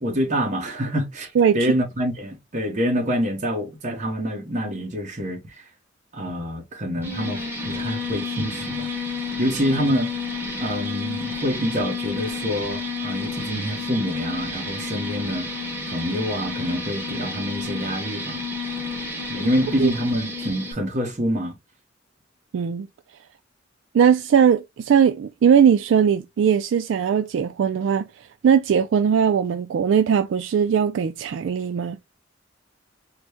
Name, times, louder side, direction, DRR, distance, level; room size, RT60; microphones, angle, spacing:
voice 1, 0.0-5.6 6.1-8.9 9.4-10.2 10.6-15.5 15.9-18.4 19.3-21.6, equal, 40° right, 1.1 m, -26 dB
sound 1, 7.0-20.7, left 3 dB, 10° right, 1.2 m, -30 dB
voice 2, 22.5-22.9 23.9-28.1 28.4-32.0, right 7 dB, 70° right, 0.3 m, -19 dB
4.0 x 2.1 x 3.3 m
head